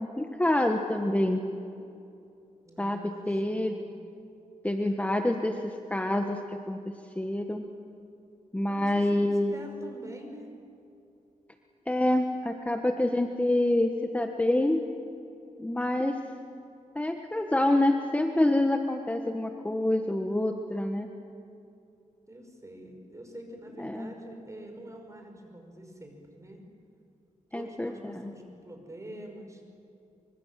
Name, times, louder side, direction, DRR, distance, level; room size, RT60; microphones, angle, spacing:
voice 1, 0.0-1.4 2.8-3.8 4.6-7.7 8.5-9.5 11.9-14.8 15.6-16.1 16.9-21.1 23.8-24.1 27.5-28.3, left 1 dB, 10° left, 4 dB, 1.4 m, -27 dB
voice 2, 2.6-3.9 8.7-10.5 22.3-26.6 27.5-29.6, right 1 dB, 20° right, 3 dB, 5.8 m, -46 dB
25.0 x 24.5 x 7.6 m, 2.7 s
cardioid pair, 75°, 14 cm